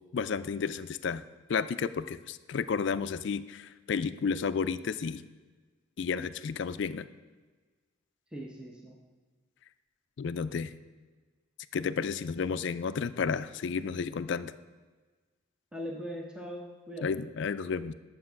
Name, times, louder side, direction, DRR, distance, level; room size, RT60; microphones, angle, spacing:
voice 1, 0.1-1.2 1.5-5.2 6.0-7.1 10.2-10.7 11.7-14.5 17.0-17.9, left 5 dB, 60° left, 13 dB, 0.4 m, -32 dB
voice 2, 8.3-9.0 15.7-17.2, equal, 5° right, 0 dB, 0.8 m, -40 dB
9.8 x 7.3 x 5.7 m, 1.3 s
head